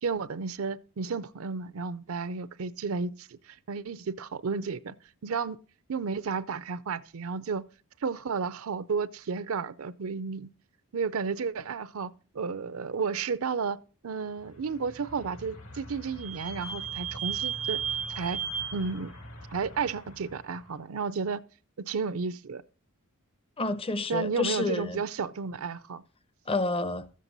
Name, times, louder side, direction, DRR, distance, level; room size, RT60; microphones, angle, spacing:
voice 1, 0.0-4.9 5.2-5.6 5.9-7.6 8.0-10.5 10.9-13.8 14.0-17.8 18.1-18.4 18.7-19.1 19.5-21.4 21.8-22.6 24.1-26.0, right 5 dB, 70° right, 0.5 m, -32 dB
Vehicle / Squeak, 14.8-20.4, right 6 dB, 75° left, 3.0 m, -36 dB
voice 2, 23.6-25.0 26.5-27.1, left 3 dB, 25° left, 0.6 m, -29 dB
13.5 x 7.5 x 4.0 m
head